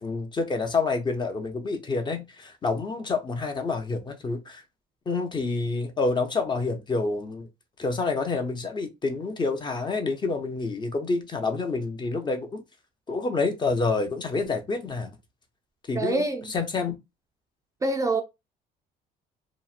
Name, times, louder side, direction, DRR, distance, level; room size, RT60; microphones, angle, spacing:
voice 1, 0.0-4.6 5.1-7.5 7.8-12.6 13.1-15.1 15.9-16.2 16.5-16.9, left 3 dB, 25° left, 0.6 m, -28 dB
voice 2, 15.9-16.5 17.8-18.2, right 2 dB, 20° right, 0.3 m, -25 dB
2.9 x 2.0 x 2.4 m
cardioid pair, 110°, 17 cm